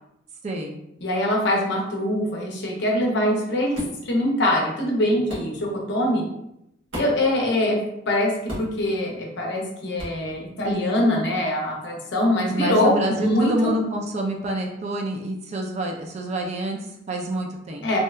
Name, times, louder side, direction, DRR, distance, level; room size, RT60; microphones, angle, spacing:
voice 1, 0.4-0.8 12.5-17.9, right 1 dB, 35° right, 1 dB, 0.3 m, -27 dB
voice 2, 1.0-6.2 7.0-7.8 8.1-13.7 17.8-18.0, left 1 dB, 60° left, -1 dB, 0.6 m, -23 dB
sound 1, 3.7-4.0 5.3-5.5 6.9-7.3 8.5-8.8 10.0-10.2, equal, 80° right, 1.1 m, -33 dB
2.7 x 2.1 x 2.3 m, 0.83 s
head